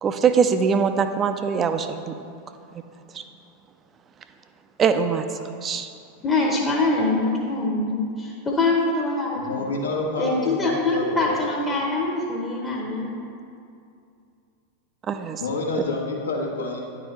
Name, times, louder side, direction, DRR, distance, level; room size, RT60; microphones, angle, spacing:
voice 1, 0.0-2.1 3.1-3.2 4.8-5.2 5.6-5.9 15.1-15.4, right 6 dB, 25° right, 8 dB, 0.4 m, -22 dB
voice 2, 6.2-9.6 10.2-13.1, left 2 dB, 20° left, -3 dB, 0.9 m, -24 dB
voice 3, 9.3-11.4 15.4-16.8, left 3 dB, 70° left, -2 dB, 1.1 m, -28 dB
9.7 x 4.7 x 3.2 m, 2.5 s
figure-of-eight pair, 90°, 0 cm